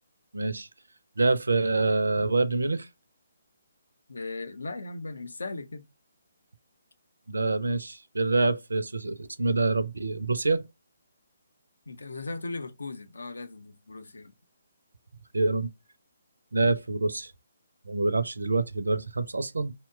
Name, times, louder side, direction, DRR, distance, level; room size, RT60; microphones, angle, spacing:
voice 1, 0.3-0.7 1.2-2.9 7.3-10.6 15.3-15.7 16.5-17.3 17.9-19.7, right 3 dB, 70° right, 0.4 m, -26 dB
voice 2, 4.1-5.8 11.9-14.3, left 3 dB, 65° left, 0.5 m, -37 dB
2.8 x 2.2 x 3.5 m
figure-of-eight pair, 140°, 0 cm